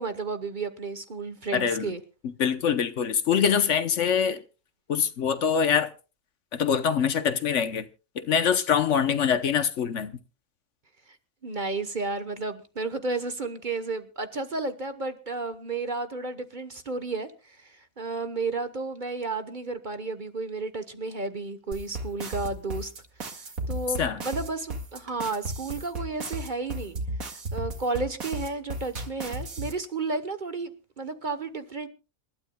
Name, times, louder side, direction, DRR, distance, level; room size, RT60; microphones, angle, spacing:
voice 1, 0.0-2.0 11.4-22.9 23.4-27.0 27.3-31.9, right 3 dB, 40° right, 1.1 m, -32 dB
voice 2, 1.5-1.9 2.4-4.4 4.9-5.9 6.5-7.9 8.2-10.1 24.0-24.2, left 7 dB, 65° left, 1.2 m, -24 dB
sound 1, 21.7-29.7, right 1 dB, 85° right, 2.5 m, -34 dB
27.0 x 12.5 x 2.2 m
omnidirectional pair, 1.4 m